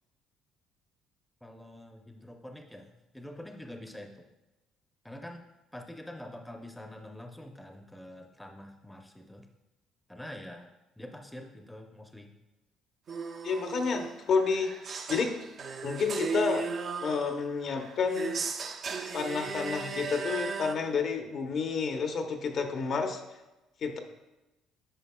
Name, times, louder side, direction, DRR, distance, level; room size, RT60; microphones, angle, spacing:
voice 1, 1.4-4.3 5.0-5.5 5.7-9.5 10.1-12.3, left 1 dB, 5° left, 4 dB, 0.6 m, -46 dB
sound 1, 13.1-20.8, right 5 dB, 45° right, 0.5 m, -36 dB
voice 2, 13.4-14.7 15.1-15.4 15.8-16.7 17.0-18.4 19.1-23.2 23.8-24.0, left 5 dB, 50° left, 5 dB, 0.7 m, -30 dB
10.0 x 5.1 x 2.2 m, 1.0 s
cardioid pair, 110°, 0 cm